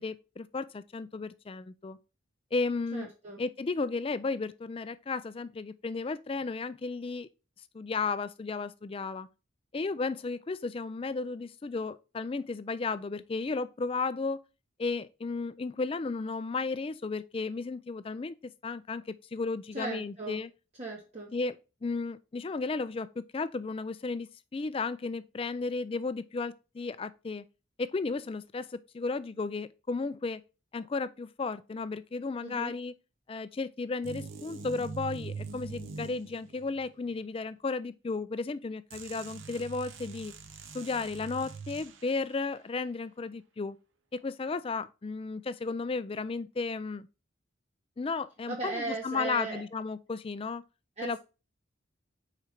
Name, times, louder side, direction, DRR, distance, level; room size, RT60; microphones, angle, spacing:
voice 1, 0.0-2.0 2.5-3.1 3.4-7.3 7.7-9.3 9.7-14.4 14.8-18.4 18.6-20.5 21.3-27.4 27.8-30.4 30.7-32.9 33.3-40.3 40.7-43.8 44.1-47.1 48.0-50.6 51.0-51.2, left 4 dB, 25° left, 0.3 m, -34 dB
voice 2, 2.9-3.4 19.7-20.4 20.8-21.3 32.4-32.7 48.5-49.6 51.0-51.2, right 3 dB, 30° right, 1.1 m, -37 dB
sound 1, 34.0-36.9 38.9-42.3, right 4 dB, 70° right, 0.8 m, -43 dB
4.9 x 4.5 x 5.6 m
head